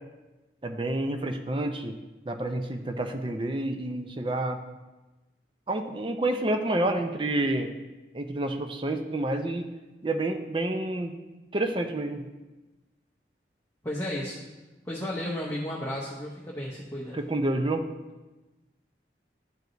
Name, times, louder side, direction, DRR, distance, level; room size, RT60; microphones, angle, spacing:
voice 1, 0.6-1.9 2.2-4.6 5.7-7.7 8.1-9.7 10.0-11.1 11.5-12.3 17.1-17.9, right 1 dB, 30° right, 6 dB, 0.5 m, -29 dB
voice 2, 13.8-14.4 14.9-17.2, left 1 dB, 15° left, -5 dB, 0.8 m, -33 dB
12.0 x 4.7 x 2.6 m, 1.1 s
head